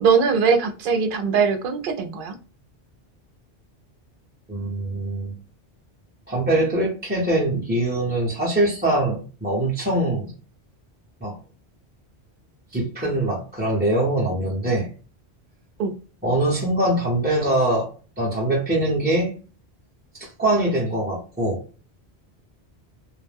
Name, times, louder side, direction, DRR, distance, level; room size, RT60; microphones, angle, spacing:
voice 1, 0.0-2.3 15.8-16.0, right 5 dB, 60° right, 6 dB, 0.6 m, -21 dB
voice 2, 4.5-5.3 6.3-10.3 11.2-11.3 12.7-14.9 16.2-17.9 18.2-19.3 20.1-21.6, right 1 dB, 10° right, -5 dB, 0.6 m, -23 dB
2.3 x 2.1 x 3.2 m, 0.36 s
omnidirectional pair, 1.1 m